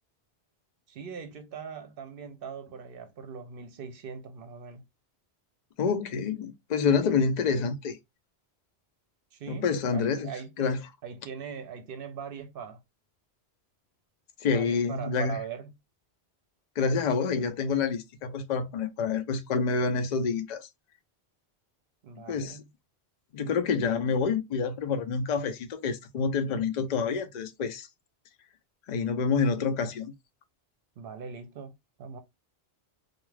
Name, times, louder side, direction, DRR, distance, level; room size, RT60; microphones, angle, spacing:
voice 1, 0.9-4.8 9.3-10.5 11.0-12.8 14.4-15.7 22.0-22.7 31.0-31.7 32.0-32.2, right 6 dB, 65° right, 0.7 m, -41 dB
voice 2, 5.8-8.0 9.5-10.3 10.6-10.8 14.4-15.4 16.8-20.7 22.3-22.6 23.3-27.9 28.9-30.1, left 5 dB, 50° left, 0.5 m, -27 dB
2.3 x 2.3 x 3.1 m
omnidirectional pair, 1.1 m